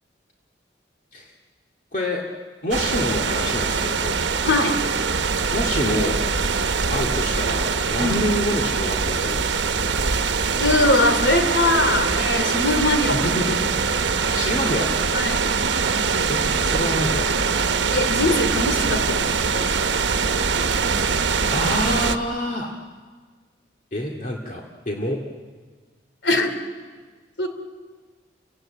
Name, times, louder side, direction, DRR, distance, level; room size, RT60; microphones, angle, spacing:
voice 1, 1.9-2.2 2.6-4.2 5.5-6.2 6.9-9.4 13.1-13.8 14.3-14.9 16.3-17.3 21.5-22.7 23.9-25.2, left 1 dB, 45° left, 0 dB, 2.2 m, -27 dB
sound 1, 2.7-22.2, right 5 dB, 85° right, 1.0 m, -23 dB
voice 2, 4.4-4.8 8.0-8.3 10.6-13.3 15.1-15.5 17.9-19.7 26.2-26.5 27.4-27.5, left 2 dB, 85° left, 7 dB, 2.9 m, -22 dB
29.5 x 17.5 x 8.8 m, 1.5 s
head